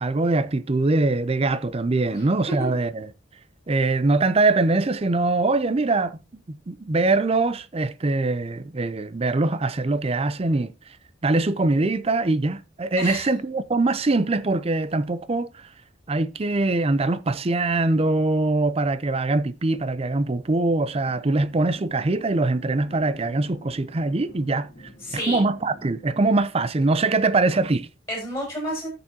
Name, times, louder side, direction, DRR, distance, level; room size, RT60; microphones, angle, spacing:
voice 1, 0.0-3.1 3.7-6.2 6.5-10.7 11.2-15.7 16.1-24.7 25.1-27.9, right 2 dB, 30° right, 0.5 m, -23 dB
voice 2, 2.1-2.8 13.0-13.3 25.0-25.4 28.1-28.9, equal, 15° left, 6.6 m, -31 dB
sound 1, 21.1-26.4, equal, 45° left, 2.4 m, -47 dB
16.0 x 6.8 x 2.8 m
head